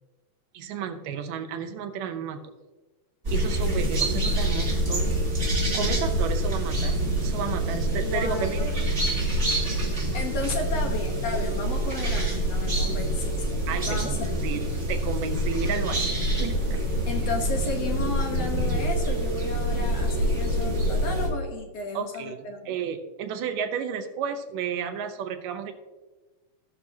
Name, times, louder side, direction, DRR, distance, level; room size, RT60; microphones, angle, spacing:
voice 1, 0.5-2.4 3.3-5.2 5.7-7.0 7.2-8.8 13.7-14.2 14.4-16.0 16.4-16.8 21.9-25.7, right 7 dB, 75° right, 6 dB, 2.3 m, -32 dB
sound 1, 3.2-21.3, right 1 dB, 25° right, 2.0 m, -26 dB
voice 2, 8.0-8.5 10.1-14.1 14.4-14.6 17.1-22.7, left 4 dB, 65° left, 2 dB, 1.7 m, -33 dB
17.5 x 6.2 x 2.8 m, 1.2 s
omnidirectional pair, 4.0 m